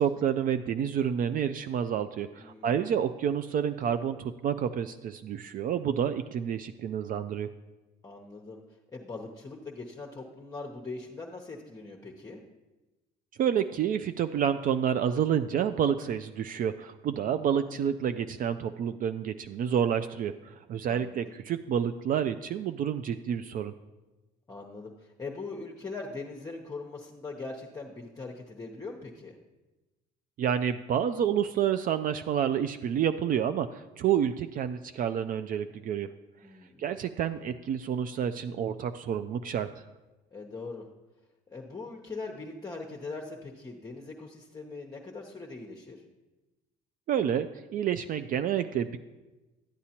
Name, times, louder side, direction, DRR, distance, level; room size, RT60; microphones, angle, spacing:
voice 1, 0.0-7.5 13.4-23.7 30.4-36.1 36.8-39.8 47.1-49.0, right 8 dB, 50° right, 10 dB, 0.4 m, -29 dB
voice 2, 2.4-3.0 8.0-8.6 8.9-12.4 17.5-17.7 20.9-21.3 24.5-29.4 36.4-36.8 40.3-40.9 41.5-46.0, left 3 dB, 20° left, -1 dB, 0.8 m, -41 dB
11.5 x 8.2 x 2.9 m, 1.1 s
supercardioid pair, 85°, 18 cm